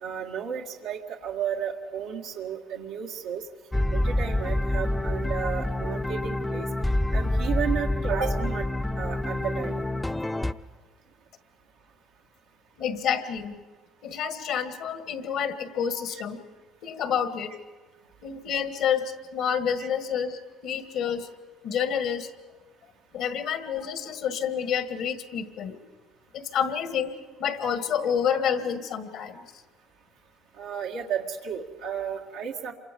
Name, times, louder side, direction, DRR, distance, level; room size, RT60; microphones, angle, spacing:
voice 1, 0.0-3.4 3.9-6.7 7.1-8.7 9.0-9.8 19.8-19.9 30.6-32.7, right 8 dB, 85° right, -1 dB, 1.8 m, -33 dB
sound 1, 3.7-10.5, left 1 dB, 10° left, 0.7 m, -27 dB
voice 2, 12.8-13.5 14.0-16.4 16.8-17.5 18.2-21.3 21.6-22.3 23.1-25.7 26.3-27.1 27.4-29.4, left 8 dB, 70° left, 9 dB, 1.7 m, -28 dB
27.5 x 24.5 x 5.3 m, 1.4 s
supercardioid pair, 85°, 0 cm